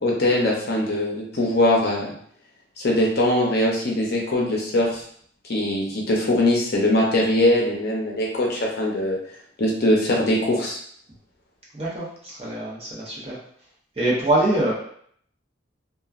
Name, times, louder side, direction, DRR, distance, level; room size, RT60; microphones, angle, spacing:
voice 1, 0.0-2.1 2.8-5.0 5.5-9.2 9.6-10.8, left 1 dB, 55° left, -2 dB, 0.6 m, -21 dB
voice 2, 11.7-13.4 14.0-14.7, right 1 dB, 30° right, -6 dB, 0.9 m, -24 dB
2.9 x 2.3 x 2.4 m, 0.62 s
head